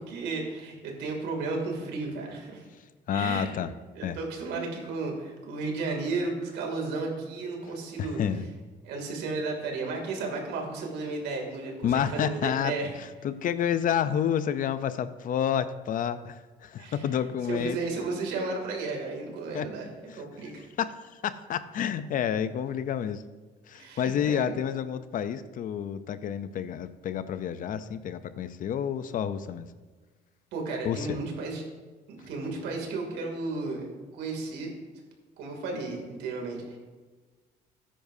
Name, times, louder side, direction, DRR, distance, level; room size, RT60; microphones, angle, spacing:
voice 1, 0.0-2.7 3.1-3.5 3.9-8.2 8.8-12.9 16.8-19.9 20.1-20.7 23.7-24.6 30.5-31.6 32.1-34.7 35.4-36.8, right 3 dB, 85° right, 1 dB, 2.7 m, -34 dB
voice 2, 3.1-3.7 4.0-4.2 8.0-8.4 11.8-17.8 19.5-19.7 20.1-20.2 20.8-23.2 23.7-29.7 30.8-31.2, left 9 dB, 55° left, 13 dB, 0.6 m, -29 dB
14.0 x 10.0 x 2.7 m, 1.3 s
cardioid pair, 110°, 17 cm